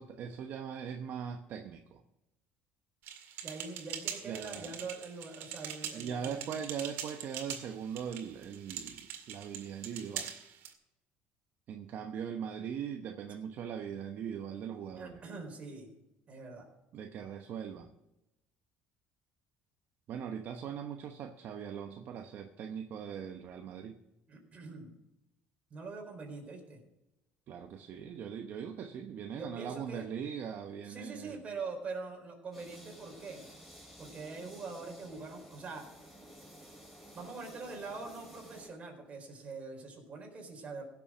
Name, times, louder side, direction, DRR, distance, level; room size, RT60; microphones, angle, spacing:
voice 1, 0.0-2.0 4.2-4.8 5.9-10.3 11.7-15.2 16.9-17.9 20.1-24.0 27.5-31.4, right 8 dB, 55° right, 5 dB, 1.0 m, -40 dB
sound 1, 3.0-10.7, right 9 dB, 75° right, 2.1 m, -43 dB
voice 2, 3.4-6.6 15.0-15.9 16.3-16.7 24.3-24.9 25.7-26.8 29.3-30.1 30.8-33.4 34.0-35.8 37.1-40.8, right 4 dB, 35° right, 2 dB, 4.2 m, -44 dB
sound 2, 32.5-38.7, equal, ahead, 4.4 m, -53 dB
17.0 x 7.1 x 6.2 m, 0.93 s
cardioid pair, 115°, 4 cm